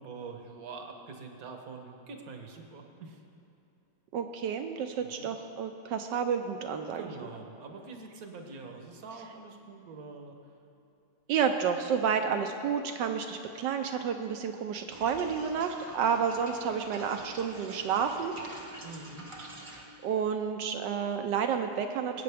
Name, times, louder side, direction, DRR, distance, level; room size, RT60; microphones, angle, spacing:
voice 1, 0.0-3.2 5.0-5.3 6.9-10.4 18.8-19.3, right 4 dB, 55° right, 4 dB, 1.1 m, -45 dB
voice 2, 4.1-7.0 11.3-18.3 20.0-22.2, right 7 dB, 75° right, 6 dB, 1.0 m, -30 dB
sound 1, 14.9-19.8, right 1 dB, 25° right, 0.6 m, -47 dB
19.0 x 8.7 x 3.4 m, 2.8 s
omnidirectional pair, 2.4 m